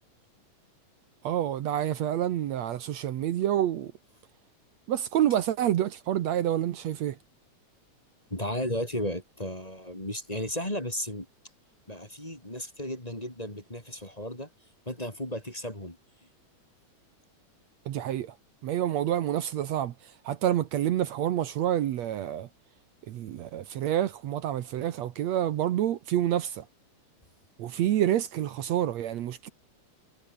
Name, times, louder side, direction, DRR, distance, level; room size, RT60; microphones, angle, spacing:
voice 1, 1.2-3.9 4.9-7.2 17.9-18.3 18.6-19.9 20.3-22.5 23.1-26.6 27.6-29.5, right 11 dB, 70° right, 2.3 m, -28 dB
voice 2, 8.3-11.3 11.9-14.5 14.9-16.0, left 1 dB, 10° left, 3.5 m, -34 dB
omnidirectional pair, 3.3 m